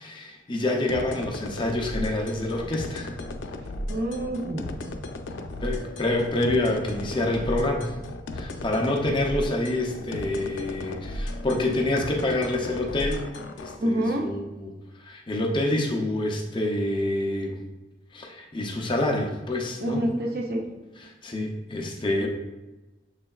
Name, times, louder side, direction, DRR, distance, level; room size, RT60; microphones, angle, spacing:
voice 1, 0.0-3.2 5.3-7.9 8.3-13.3 13.6-14.7 15.0-17.6 18.1-20.0 21.0-22.3, left 1 dB, 25° left, 1 dB, 0.5 m, -27 dB
sound 1, 0.9-13.8, left 1 dB, 90° left, 0.4 m, -35 dB
voice 2, 3.9-4.7 5.4-5.5 13.8-14.3 19.8-20.7 22.2-22.3, right 1 dB, 55° right, 2 dB, 0.6 m, -27 dB
6.3 x 3.3 x 2.3 m, 1.1 s
head